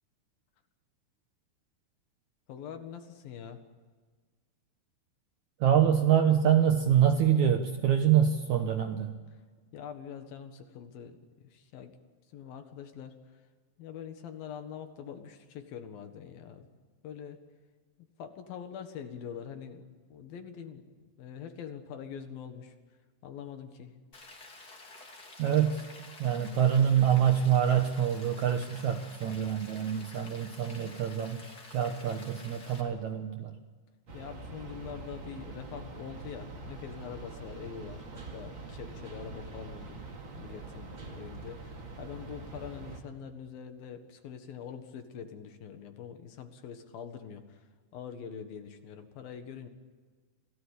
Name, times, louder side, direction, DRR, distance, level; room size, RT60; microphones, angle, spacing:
voice 1, 2.5-3.6 9.7-11.2 11.4-11.9 12.3-13.2 13.8-16.7 17.0-17.4 18.2-19.8 20.1-22.7 23.2-23.9 34.1-38.1 38.3-40.0 40.3-47.6 47.9-49.7, left 8 dB, 65° left, 7 dB, 3.3 m, -44 dB
voice 2, 5.6-9.1 25.4-25.8 26.2-33.5, right 9 dB, 65° right, 6 dB, 1.9 m, -25 dB
Rain, 24.1-32.8, left 3 dB, 25° left, 2.9 m, -50 dB
sound 1, 34.1-43.0, right 3 dB, 35° right, 2.7 m, -44 dB
27.5 x 17.0 x 8.5 m, 1.4 s
omnidirectional pair, 4.7 m